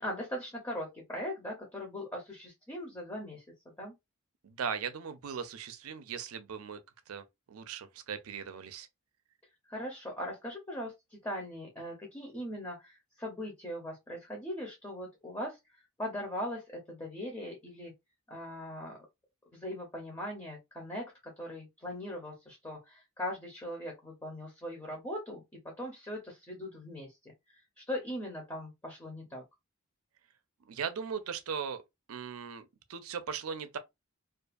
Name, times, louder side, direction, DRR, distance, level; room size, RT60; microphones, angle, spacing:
voice 1, 0.0-3.4 3.8-3.9 9.7-17.9 18.3-19.0 19.5-29.4, left 1 dB, 15° left, 0.6 m, -40 dB
voice 2, 4.4-6.8 7.1-8.9 30.7-31.8 32.1-33.8, right 6 dB, 80° right, 0.5 m, -38 dB
2.4 x 2.3 x 2.4 m
head